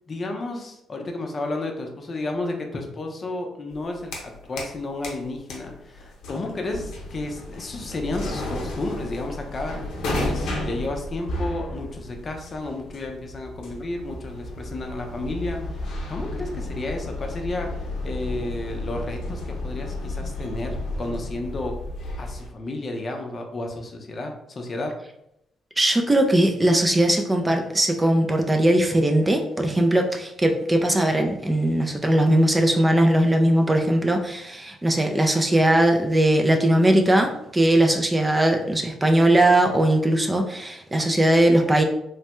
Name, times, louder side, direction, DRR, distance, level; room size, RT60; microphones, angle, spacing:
voice 1, 0.1-9.8 10.2-21.8 22.2-24.9, left 2 dB, 40° left, 3 dB, 0.5 m, -32 dB
sound 1, 3.7-4.8 5.0-22.5, left 1 dB, 80° left, 0.7 m, -33 dB
voice 2, 25.8-41.8, right 1 dB, 15° right, 4 dB, 0.4 m, -19 dB
3.2 x 2.1 x 2.9 m, 0.81 s
cardioid pair, 90°, 0 cm